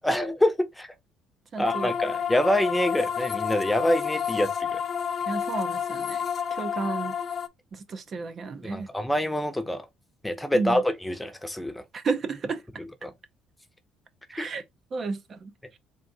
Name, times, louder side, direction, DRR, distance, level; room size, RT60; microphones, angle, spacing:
voice 1, 0.0-0.9 1.6-4.8 8.6-9.9 10.2-11.8 13.0-13.1 14.4-14.5, left 1 dB, 5° left, 0.7 m, -26 dB
voice 2, 1.5-1.9 5.3-6.2 6.5-7.2 7.7-8.9 10.5-10.8 11.9-12.6 14.3-14.6 14.9-15.8, right 4 dB, 40° right, 0.6 m, -32 dB
sound 1, 1.6-7.5, left 7 dB, 45° left, 0.4 m, -30 dB
3.8 x 2.5 x 3.8 m
cardioid pair, 100°, 0 cm